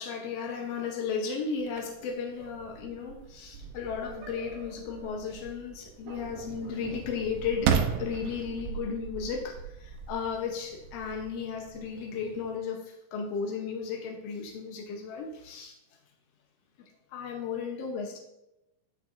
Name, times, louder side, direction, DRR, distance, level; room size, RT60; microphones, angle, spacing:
voice 1, 0.0-15.8 17.1-18.2, left 6 dB, 80° left, 2 dB, 1.4 m, -35 dB
sound 1, 1.6-12.6, right 7 dB, 85° right, 2.3 m, -36 dB
11.0 x 6.5 x 2.5 m, 0.91 s
omnidirectional pair, 4.0 m